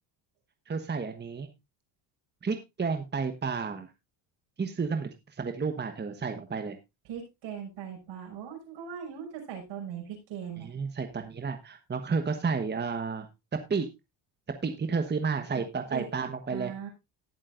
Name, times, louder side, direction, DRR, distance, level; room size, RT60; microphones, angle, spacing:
voice 1, 0.7-1.5 2.4-3.9 4.6-6.8 10.6-13.3 13.7-13.9 14.6-16.7, right 5 dB, 20° right, 7 dB, 1.2 m, -31 dB
voice 2, 7.0-10.7 15.6-15.7 15.9-16.1 16.5-16.9, right 8 dB, 70° right, 1 dB, 6.0 m, -39 dB
18.5 x 7.3 x 2.6 m, 0.23 s
supercardioid pair, 90°, 48 cm